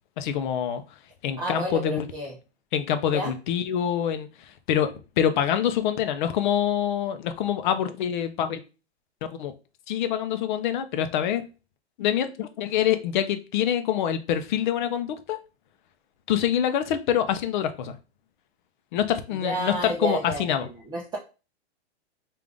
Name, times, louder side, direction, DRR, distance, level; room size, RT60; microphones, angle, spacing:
voice 1, 0.2-0.8 1.2-2.1 2.7-8.6 9.4-9.5 9.9-11.4 12.0-15.4 16.3-17.9 18.9-20.7, left 9 dB, 45° left, 10 dB, 0.6 m, -25 dB
voice 2, 1.4-2.3 3.1-3.3 19.4-21.2, right 1 dB, 10° right, -4 dB, 0.6 m, -30 dB
3.6 x 2.5 x 3.4 m, 0.31 s
hypercardioid pair, 145°, 34 cm